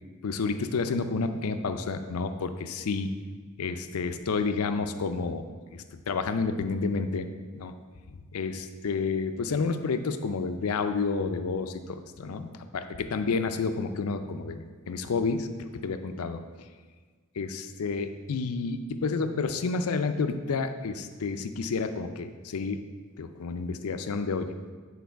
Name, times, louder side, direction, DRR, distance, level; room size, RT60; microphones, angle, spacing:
voice 1, 0.2-3.1 3.6-5.4 5.7-7.7 8.3-16.4 17.4-22.8 23.2-24.6, left 4 dB, 75° left, 8 dB, 0.5 m, -30 dB
9.3 x 4.0 x 4.6 m, 1.5 s
head